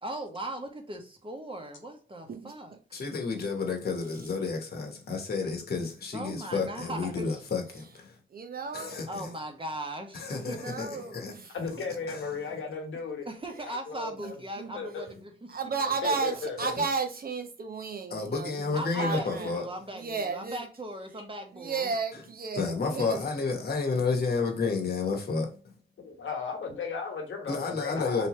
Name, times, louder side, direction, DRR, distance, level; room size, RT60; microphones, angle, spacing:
voice 1, 0.0-2.8 6.1-7.4 9.0-11.0 13.2-15.5 16.0-16.4 18.7-21.9, right 1 dB, 25° right, 1.2 m, -39 dB
voice 2, 2.9-8.1 8.7-9.3 10.1-10.9 11.1-11.3 12.1-12.2 16.6-16.7 18.1-19.6 22.5-25.7 27.5-28.3, left 4 dB, 50° left, 1.2 m, -31 dB
voice 3, 8.3-9.0 10.4-11.5 14.2-14.3 14.6-14.7 15.5-19.6 19.9-20.6 21.5-23.2, right 4 dB, 50° right, 0.9 m, -33 dB
voice 4, 11.5-13.3 13.6-14.4 14.7-15.1 16.0-16.7 26.0-28.3, left 5 dB, 75° left, 1.3 m, -35 dB
3.3 x 3.0 x 3.0 m
cardioid pair, 55°, 20 cm